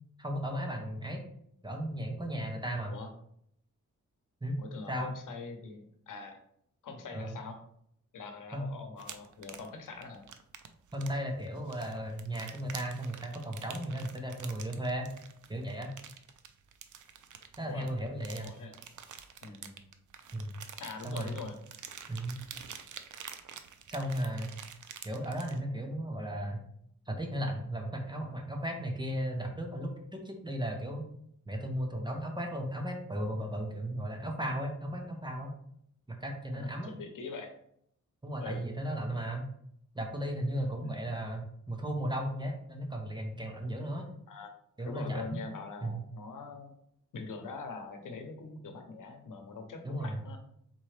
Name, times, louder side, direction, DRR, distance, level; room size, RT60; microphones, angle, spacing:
voice 1, 0.2-1.2 1.6-3.0 4.4-4.6 4.9-5.1 7.1-7.4 8.5-8.6 10.9-15.1 15.5-15.9 17.6-18.5 20.3-20.6 21.0-21.4 22.1-22.4 23.9-24.5 25.0-26.6 27.1-31.0 31.5-35.5 36.1-36.9 38.2-39.4 39.9-44.1 44.8-45.4 45.8-46.0 49.8-50.2, right 1 dB, 15° right, 2 dB, 0.7 m, -35 dB
voice 2, 4.6-6.4 6.8-7.6 8.1-10.3 17.6-17.9 18.4-18.7 19.4-19.8 20.8-21.6 36.5-37.5 38.4-38.7 40.8-41.0 44.3-46.7 47.1-50.4, left 4 dB, 85° left, 5 dB, 0.8 m, -43 dB
sound 1, 9.0-25.6, right 8 dB, 70° right, 0.5 m, -48 dB
4.3 x 3.7 x 3.2 m, 0.70 s
wide cardioid pair, 165°, 31 cm